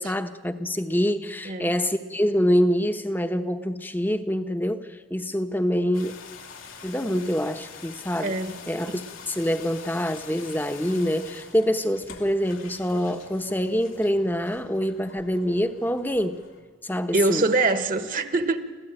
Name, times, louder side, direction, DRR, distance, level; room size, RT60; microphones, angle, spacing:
voice 1, 0.0-6.2 6.8-8.4 8.7-16.4 16.8-17.4, equal, 10° left, 0.9 m, -25 dB
sound 1, 5.9-16.6, left 5 dB, 90° left, 2.7 m, -45 dB
voice 2, 8.2-8.6 17.1-18.6, right 3 dB, 40° right, 1.2 m, -24 dB
26.5 x 15.5 x 9.0 m
head